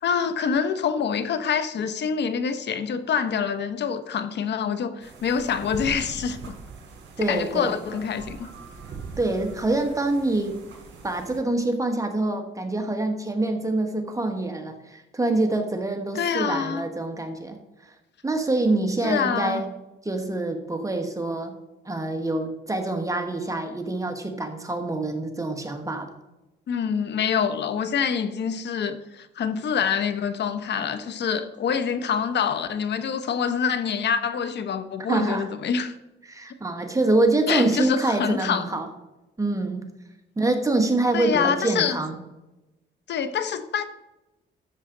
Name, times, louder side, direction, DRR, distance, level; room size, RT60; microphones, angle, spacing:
voice 1, 0.0-6.6 7.2-8.5 16.1-16.9 19.0-19.6 26.7-35.9 37.5-38.7 41.1-42.0 43.1-43.8, left 7 dB, 60° left, 10 dB, 1.0 m, -26 dB
sound 1, 5.0-11.4, right 5 dB, 65° right, 3.5 m, -41 dB
voice 2, 7.2-7.7 9.2-10.6 11.0-17.6 18.2-19.7 20.0-21.6 21.8-26.1 35.1-35.5 36.3-38.9 39.4-39.9 40.4-42.1, right 2 dB, 15° right, 5 dB, 1.4 m, -25 dB
13.0 x 7.3 x 3.9 m, 1.0 s
cardioid pair, 90°, 20 cm